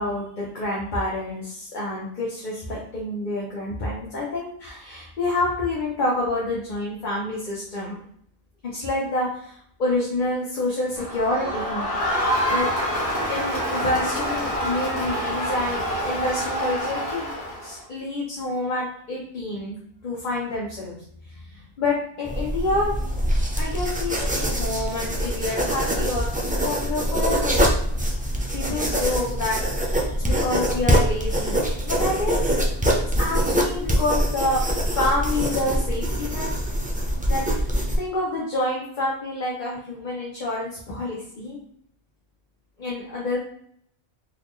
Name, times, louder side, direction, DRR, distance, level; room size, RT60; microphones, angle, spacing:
voice 1, 0.0-8.0 8.6-11.9 12.5-17.3 17.6-22.9 23.5-26.3 26.6-27.7 28.5-32.4 32.9-34.6 34.9-36.5 37.3-41.6 42.8-43.4, left 2 dB, 50° left, -5 dB, 0.9 m, -28 dB
Crowd, 11.0-17.8, equal, 15° left, 1.3 m, -26 dB
sound 1, 22.2-38.0, equal, 15° right, 0.3 m, -24 dB
3.9 x 2.4 x 3.1 m, 0.66 s
omnidirectional pair, 1.1 m